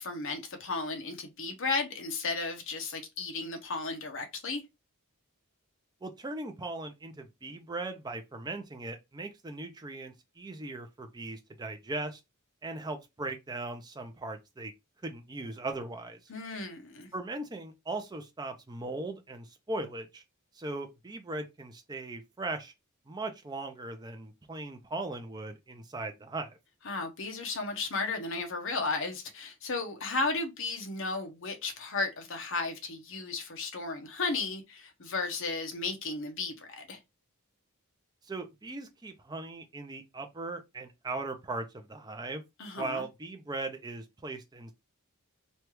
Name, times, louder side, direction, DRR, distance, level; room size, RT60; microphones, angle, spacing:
voice 1, 0.0-4.6 16.3-17.1 26.9-37.0 42.6-43.0, left 3 dB, 60° left, 0.8 m, -34 dB
voice 2, 6.0-12.2 12.6-14.7 15.0-16.2 17.1-20.2 20.5-22.7 23.1-26.6 38.2-42.4 42.8-44.7, right 2 dB, 20° right, 0.4 m, -39 dB
3.2 x 2.3 x 2.9 m
head